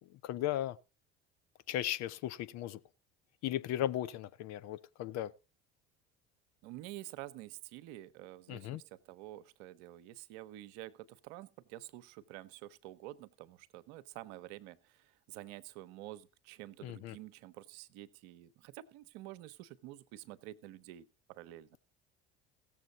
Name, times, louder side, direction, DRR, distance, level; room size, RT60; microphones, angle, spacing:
voice 1, 0.1-0.8 1.7-2.8 3.4-5.3 8.5-8.8 16.8-17.2, left 12 dB, 55° left, 0.6 m, -36 dB
voice 2, 6.6-21.8, right 15 dB, 65° right, 0.8 m, -49 dB
16.5 x 7.2 x 4.0 m
hypercardioid pair, 65°, 33 cm